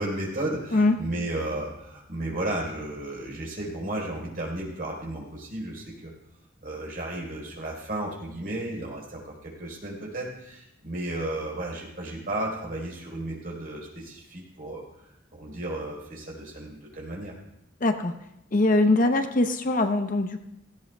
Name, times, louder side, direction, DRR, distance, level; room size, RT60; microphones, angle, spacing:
voice 1, 0.0-6.1 6.6-14.8 15.3-17.3, right 1 dB, 45° right, -2 dB, 4.1 m, -33 dB
voice 2, 17.8-18.1 18.5-20.4, left 2 dB, 40° left, 7 dB, 0.7 m, -22 dB
17.5 x 16.0 x 2.3 m, 0.83 s
head